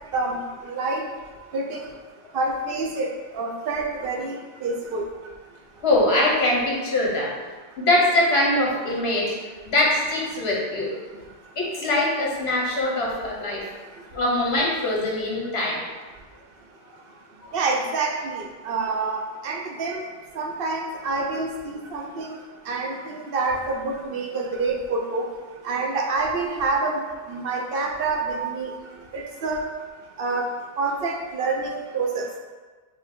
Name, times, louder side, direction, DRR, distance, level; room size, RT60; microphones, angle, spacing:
voice 1, 0.1-1.0 1.5-1.9 2.3-3.1 3.3-5.1 17.5-20.0 20.4-22.4 22.7-25.3 25.6-27.0 27.3-28.7 29.1-29.6 30.2-30.5 30.8-32.3, right 3 dB, 65° right, 0 dB, 0.7 m, -27 dB
voice 2, 5.8-7.3 7.8-9.4 9.7-10.9 11.6-13.6 14.1-15.8 17.4-17.5, left 1 dB, 70° left, -3 dB, 1.2 m, -22 dB
5.4 x 2.1 x 3.5 m, 1.4 s
omnidirectional pair, 1.1 m